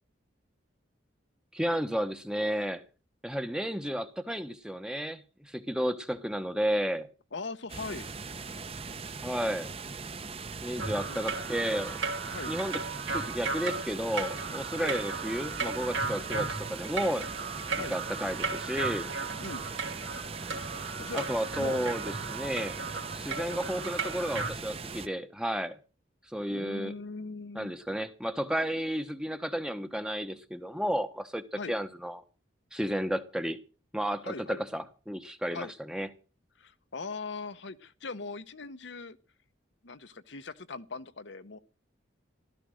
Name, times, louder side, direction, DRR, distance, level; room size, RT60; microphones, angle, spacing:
voice 1, 1.5-2.8 3.2-7.1 9.2-9.7 10.6-12.0 12.5-12.8 13.1-17.3 17.7-19.1 21.1-22.8 23.1-25.8 26.3-26.9 27.5-32.2 32.7-33.6 33.9-36.1, equal, 5° right, 9 dB, 0.9 m, -32 dB
voice 2, 7.3-8.1 11.1-11.2 12.3-12.5 14.8-15.0 17.8-18.0 19.4-19.6 21.0-21.3 21.6-21.8 26.5-27.8 31.5-31.8 34.2-34.6 35.5-35.7 36.6-39.2 39.8-41.6, left 3 dB, 65° left, 11 dB, 0.9 m, -40 dB
sound 1, 7.7-25.1, right 4 dB, 30° right, 0.9 m, -40 dB
sound 2, 10.8-24.5, right 4 dB, 75° right, 2.9 m, -36 dB
15.0 x 13.0 x 6.4 m, 0.37 s
head